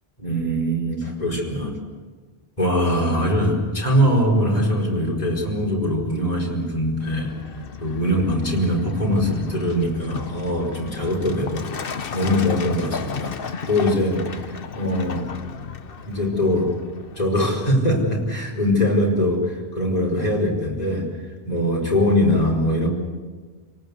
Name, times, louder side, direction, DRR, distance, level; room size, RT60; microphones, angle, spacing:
voice 1, 0.2-1.7 2.6-7.4 7.8-13.4 13.7-15.3 16.0-16.8 17.2-21.1 21.5-22.9, equal, 40° left, -1 dB, 4.9 m, -22 dB
Truck, 7.0-17.3, left 5 dB, 60° left, 1.1 m, -34 dB
29.0 x 18.5 x 8.2 m, 1.5 s
omnidirectional pair, 1.1 m